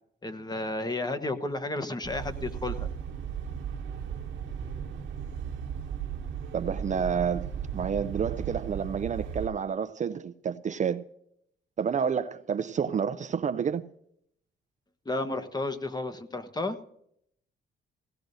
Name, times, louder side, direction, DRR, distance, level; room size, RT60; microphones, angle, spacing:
voice 1, 0.2-2.9 15.0-16.8, left 2 dB, 20° left, 1.0 m, -32 dB
sound 1, 2.0-9.5, right 8 dB, 70° right, 1.2 m, -36 dB
voice 2, 6.5-11.0 11.8-13.9, right 7 dB, 40° right, 0.5 m, -29 dB
16.5 x 16.5 x 2.7 m
cardioid pair, 90°, 20 cm